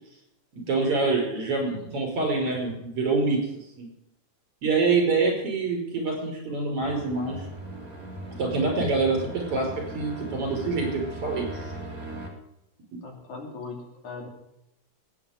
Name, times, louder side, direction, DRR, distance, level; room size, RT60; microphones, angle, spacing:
voice 1, 0.5-3.4 3.8-3.9 4.6-7.5 8.4-11.7, right 3 dB, 45° right, 0 dB, 6.5 m, -26 dB
sound 1, 6.8-12.3, right 1 dB, 30° right, 3.1 m, -38 dB
voice 2, 13.0-14.3, left 4 dB, 70° left, 1 dB, 4.3 m, -39 dB
22.0 x 9.3 x 5.3 m, 0.83 s
omnidirectional pair, 3.5 m